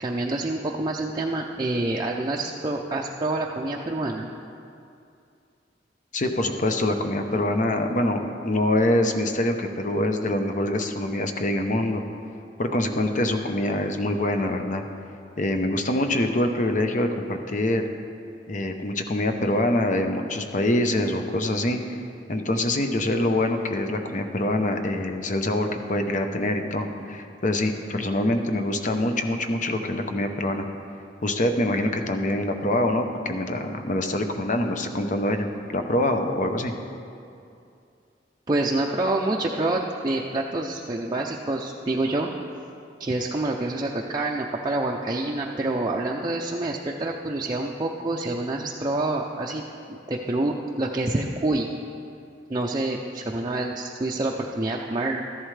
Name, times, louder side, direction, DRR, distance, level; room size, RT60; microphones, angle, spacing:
voice 1, 0.0-4.3 38.5-42.3 43.0-49.6 49.9-51.7 52.5-55.2, right 2 dB, 25° right, -2 dB, 0.5 m, -27 dB
voice 2, 6.1-12.0 12.6-14.8 15.4-17.9 18.5-21.8 22.3-30.6 31.2-36.7, left 1 dB, 45° left, 6 dB, 0.8 m, -25 dB
13.5 x 11.0 x 3.3 m, 2.5 s
head